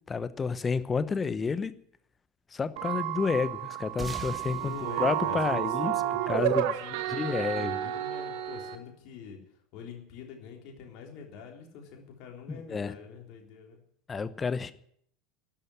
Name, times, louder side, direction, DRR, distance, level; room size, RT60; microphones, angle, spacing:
voice 1, 0.1-1.7 2.5-5.9 6.3-6.7 7.1-7.9 12.5-12.9 14.1-14.7, left 5 dB, 20° left, 15 dB, 0.9 m, -30 dB
sound 1, 2.8-8.8, right 12 dB, 55° right, 1.2 m, -31 dB
sound 2, 4.0-6.8, right 3 dB, 15° right, 1.7 m, -44 dB
voice 2, 4.6-9.4 9.7-13.8, left 6 dB, 50° left, 2 dB, 3.6 m, -45 dB
12.5 x 9.8 x 9.9 m, 0.64 s
figure-of-eight pair, 75°, 0 cm